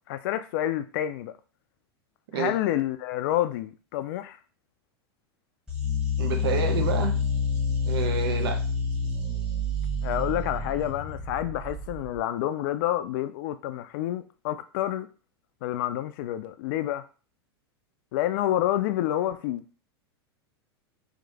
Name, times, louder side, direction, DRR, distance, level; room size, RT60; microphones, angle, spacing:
voice 1, 0.1-1.3 2.3-4.4 10.0-15.1 15.6-17.0 18.1-19.6, left 13 dB, 55° left, 0.4 m, -28 dB
sound 1, 5.7-12.2, left 4 dB, 5° right, 1.2 m, -28 dB
voice 2, 6.2-7.2 7.8-8.6, right 6 dB, 65° right, 0.6 m, -28 dB
3.0 x 2.1 x 2.8 m
figure-of-eight pair, 90°, 14 cm